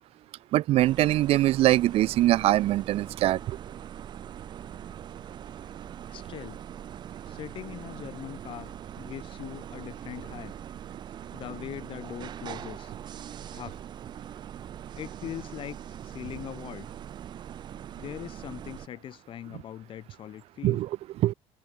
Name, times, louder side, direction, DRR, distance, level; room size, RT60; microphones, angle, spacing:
voice 1, 0.5-3.6 20.6-21.3, right 15 dB, 55° right, 0.6 m, -23 dB
sound 1, 0.8-18.9, right 9 dB, 35° right, 1.4 m, -42 dB
voice 2, 6.1-6.6 7.2-10.5 11.3-12.9 13.5-13.8 15.0-16.9 18.0-20.8, left 11 dB, 45° left, 3.1 m, -41 dB
open air
cardioid pair, 165°, 12 cm